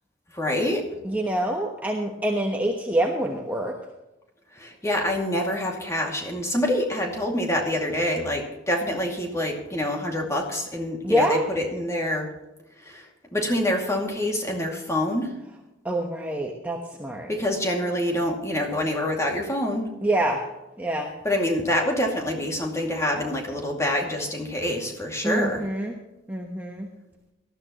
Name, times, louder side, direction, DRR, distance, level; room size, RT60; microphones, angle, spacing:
voice 1, 0.3-0.9 4.5-12.3 12.8-15.4 17.3-19.9 21.2-25.6, left 1 dB, 15° left, 1 dB, 2.4 m, -26 dB
voice 2, 1.0-3.8 11.0-11.5 15.8-17.3 20.0-20.4 20.8-21.1 25.2-25.9 26.3-26.9, right 1 dB, 10° right, 1 dB, 1.1 m, -26 dB
18.5 x 13.5 x 3.1 m, 1.0 s
head